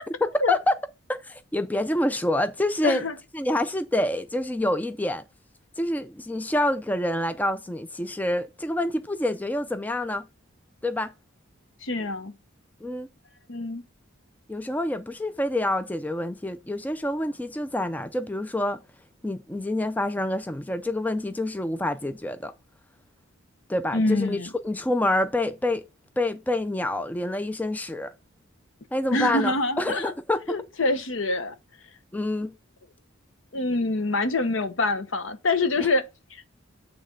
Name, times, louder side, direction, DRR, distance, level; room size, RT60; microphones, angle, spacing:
voice 1, 0.2-0.8 1.1-3.0 3.3-5.2 5.8-10.3 10.8-11.1 12.8-13.1 14.5-18.8 19.2-22.5 23.7-25.8 26.2-28.1 28.9-30.4 32.1-32.5 35.8-35.9, left 1 dB, 10° left, 0.3 m, -27 dB
voice 2, 2.8-3.1 11.8-12.3 13.5-13.8 23.9-24.5 29.1-30.1 30.5-31.5 33.5-36.0 36.3-36.4, left 2 dB, 70° left, 1.0 m, -25 dB
8.8 x 3.3 x 5.2 m
head